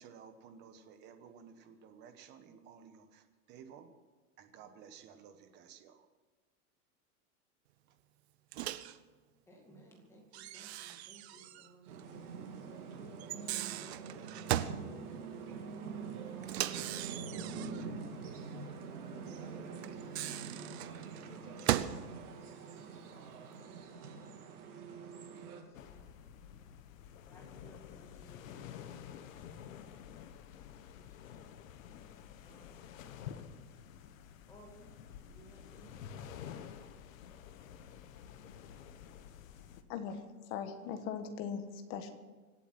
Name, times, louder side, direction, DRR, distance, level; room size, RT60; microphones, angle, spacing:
voice 1, 0.0-3.9 4.4-6.1, right 7 dB, 25° right, 8 dB, 1.1 m, -55 dB
Microwave oven, 8.5-9.0 10.3-11.7 12.0-12.1 13.2-14.8 16.4-17.9 19.8-22.0, right 13 dB, 45° right, 0.7 m, -37 dB
voice 2, 9.5-11.9 12.4-13.2 13.7-14.6 15.2-18.6 19.1-20.8 21.4-22.2 22.7-24.5 25.3-26.9 27.2-29.1 29.4-29.6 29.9-31.7 32.4-32.8 34.5-34.9 35.3-36.1, right 1 dB, 5° left, 0 dB, 2.2 m, -60 dB
sound 1, 11.9-25.6, right 5 dB, 80° right, 3.3 m, -45 dB
sound 2, 25.7-39.8, left 9 dB, 60° left, 1.3 m, -50 dB
voice 3, 39.9-42.1, left 7 dB, 30° left, 7 dB, 1.4 m, -40 dB
25.0 x 8.3 x 6.0 m, 1.3 s
supercardioid pair, 170°, 45 cm